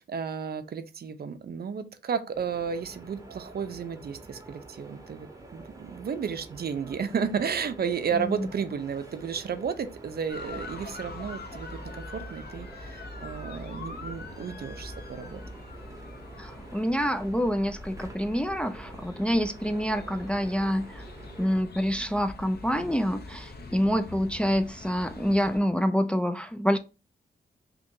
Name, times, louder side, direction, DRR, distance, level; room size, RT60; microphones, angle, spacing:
voice 1, 0.0-11.8 12.1-15.4, right 6 dB, 60° right, 10 dB, 0.5 m, -33 dB
sound 1, 2.3-21.6, right 2 dB, 20° right, 0.8 m, -48 dB
voice 2, 8.2-8.5 16.4-21.0 21.4-26.8, equal, 5° left, 9 dB, 0.3 m, -27 dB
sound 2, 10.3-25.6, left 2 dB, 55° left, 0.8 m, -43 dB
2.9 x 2.5 x 3.7 m, 0.30 s
cardioid pair, 65°, 19 cm